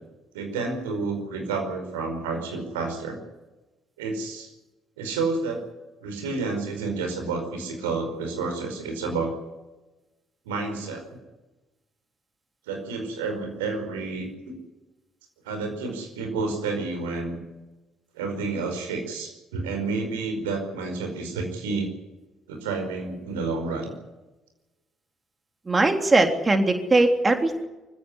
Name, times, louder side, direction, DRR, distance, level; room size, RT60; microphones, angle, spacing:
voice 1, 0.3-3.2 4.0-4.5 5.0-5.6 6.0-9.3 10.4-11.1 12.7-14.5 15.4-17.4 18.1-21.9 22.5-23.9, right 3 dB, 70° right, 4 dB, 5.0 m, -30 dB
voice 2, 25.7-27.6, right 2 dB, 25° right, 6 dB, 3.3 m, -20 dB
24.5 x 16.5 x 9.8 m, 1.1 s
figure-of-eight pair, 45°, 0 cm